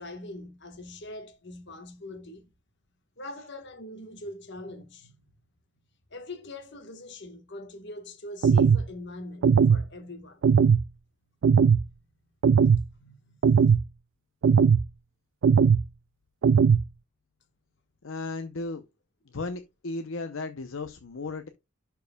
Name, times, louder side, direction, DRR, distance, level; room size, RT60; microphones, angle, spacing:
voice 1, 0.0-2.5 3.2-5.2 6.1-10.4 11.5-11.9 12.9-13.4, left 2 dB, 55° left, 1.5 m, -42 dB
sound 1, 8.4-8.8 9.4-9.8 10.4-10.8 11.4-11.8 12.4-12.8 13.4-13.8 14.4-14.8 15.4-15.8 16.4-16.8, right 6 dB, 60° right, 0.3 m, -19 dB
voice 2, 18.0-18.8 19.3-21.5, left 3 dB, 70° left, 0.7 m, -35 dB
12.0 x 4.6 x 2.3 m
head